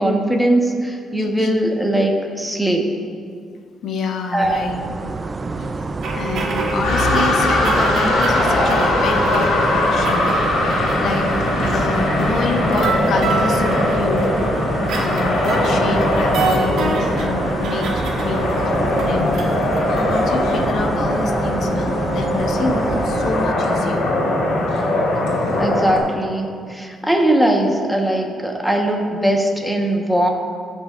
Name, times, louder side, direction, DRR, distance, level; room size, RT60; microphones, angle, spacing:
voice 1, 0.0-2.9 4.3-4.7 25.2-25.3 25.6-30.3, right 1 dB, ahead, 1 dB, 1.2 m, -20 dB
voice 2, 1.2-1.5 3.8-4.8 5.5-10.3 11.0-11.3 11.7-14.4 15.0-19.4 19.9-24.0, left 3 dB, 65° left, 3 dB, 1.0 m, -27 dB
sound 1, 4.4-23.5, right 3 dB, 35° right, 0.3 m, -27 dB
sound 2, 6.0-20.6, right 3 dB, 75° right, 1.3 m, -27 dB
sound 3, 6.8-26.0, left 2 dB, 90° left, 1.7 m, -20 dB
15.5 x 5.4 x 2.6 m, 2.2 s
cardioid pair, 90°, 0 cm